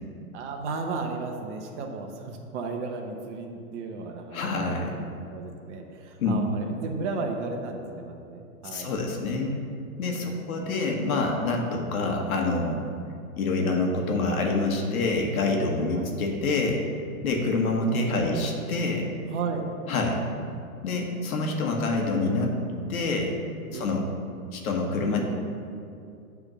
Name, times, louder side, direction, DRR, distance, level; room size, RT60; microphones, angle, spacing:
voice 1, 0.3-8.9 10.2-10.4 16.0-16.1 18.1-18.8 19.3-19.7 23.7-24.0, right 4 dB, 50° right, 3 dB, 1.0 m, -34 dB
voice 2, 4.3-5.0 6.2-6.4 8.7-9.6 10.0-12.8 13.4-16.8 17.2-19.1 19.9-20.2 20.8-22.5 22.9-23.3 23.7-24.1 24.5-25.2, left 3 dB, 70° left, 1 dB, 1.3 m, -26 dB
8.0 x 3.5 x 6.1 m, 2.5 s
hypercardioid pair, 140°, 44 cm